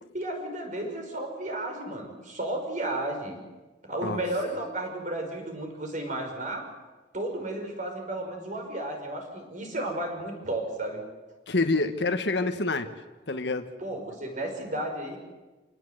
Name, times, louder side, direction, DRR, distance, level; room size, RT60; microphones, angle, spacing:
voice 1, 0.1-3.4 3.9-6.7 7.1-11.0 13.8-15.2, right 1 dB, 45° right, 4 dB, 5.4 m, -33 dB
voice 2, 11.5-12.9 13.3-13.7, left 3 dB, 70° left, 8 dB, 1.5 m, -27 dB
27.5 x 18.5 x 8.0 m, 1.2 s
head